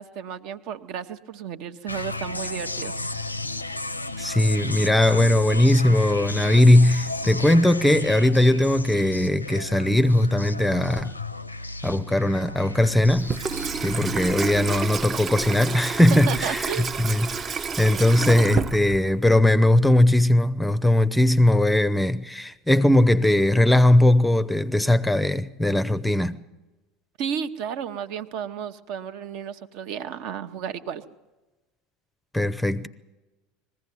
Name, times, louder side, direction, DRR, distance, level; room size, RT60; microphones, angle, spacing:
voice 1, 0.0-2.9 16.3-16.9 27.2-31.0, right 8 dB, 50° right, 1.0 m, -33 dB
sound 1, 1.9-14.9, left 2 dB, 85° left, 0.6 m, -34 dB
voice 2, 4.2-11.1 11.8-13.3 13.8-26.4 32.3-32.9, left 1 dB, 5° left, 0.7 m, -19 dB
Water tap faucet / Sink (filling or washing), 13.0-19.3, right 6 dB, 30° right, 0.7 m, -30 dB
21.0 x 15.5 x 9.3 m
figure-of-eight pair, 70°, 0 cm